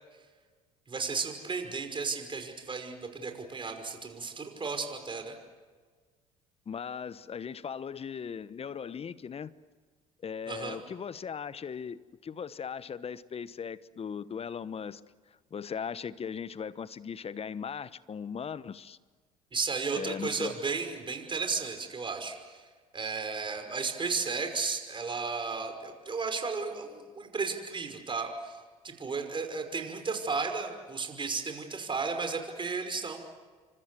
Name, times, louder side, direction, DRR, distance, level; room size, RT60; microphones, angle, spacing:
voice 1, 0.9-5.4 10.5-10.8 19.5-22.7 22.9-28.6 28.8-33.2, right 4 dB, 30° right, 6 dB, 5.5 m, -34 dB
voice 2, 6.7-9.5 10.2-15.0 15.5-19.0 20.0-20.5, left 7 dB, 35° left, 17 dB, 1.1 m, -38 dB
28.5 x 25.0 x 7.9 m, 1.5 s
hypercardioid pair, 65°, 17 cm